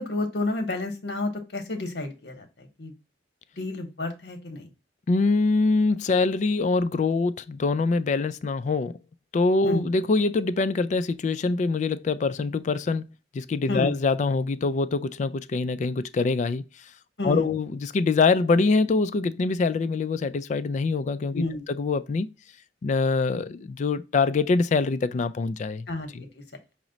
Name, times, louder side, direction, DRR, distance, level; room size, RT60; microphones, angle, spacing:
voice 1, 0.0-2.9 3.6-4.7 9.6-9.9 13.7-13.9 17.2-17.5 21.3-21.7 25.9-26.4, left 2 dB, 65° left, 1.0 m, -30 dB
voice 2, 5.1-9.0 9.3-13.1 13.3-16.9 17.2-22.3 22.8-25.9 26.1-26.2, left 3 dB, 40° left, 0.3 m, -24 dB
5.9 x 2.1 x 3.8 m
head